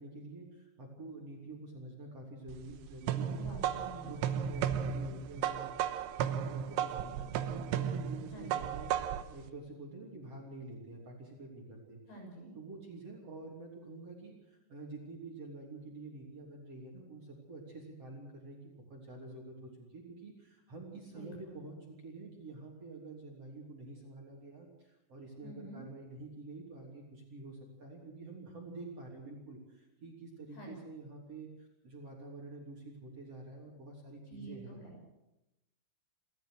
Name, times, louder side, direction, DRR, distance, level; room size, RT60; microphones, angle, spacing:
voice 1, 0.0-3.5 4.0-5.7 6.1-12.0 12.6-34.8, right 2 dB, 35° right, -1 dB, 3.9 m, -48 dB
sound 1, 2.5-9.3, right 9 dB, 90° right, 3.4 m, -34 dB
voice 2, 3.3-4.1 8.3-8.5 12.1-12.5 21.1-21.6 25.4-25.8 30.5-30.8 34.3-35.0, right 1 dB, 60° left, 0 dB, 8.8 m, -48 dB
29.5 x 13.5 x 6.5 m, 0.95 s
omnidirectional pair, 5.3 m